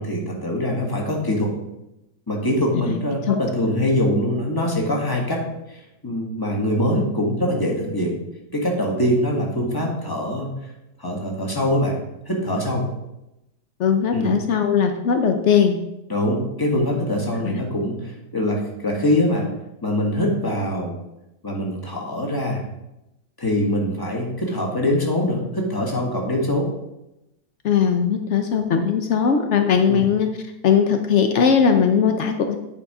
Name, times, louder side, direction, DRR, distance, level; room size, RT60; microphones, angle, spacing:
voice 1, 0.0-1.5 2.3-8.2 8.5-10.7 11.0-12.0 12.3-12.8 14.1-14.3 16.1-19.4 19.8-20.9 21.4-22.6 23.4-26.7 29.8-30.0, left 1 dB, 15° left, 0 dB, 1.4 m, -23 dB
voice 2, 13.8-15.8 17.4-17.5 27.6-30.3 30.6-32.6, left 7 dB, 90° left, 6 dB, 0.6 m, -19 dB
9.4 x 5.0 x 4.8 m, 0.91 s
omnidirectional pair, 2.1 m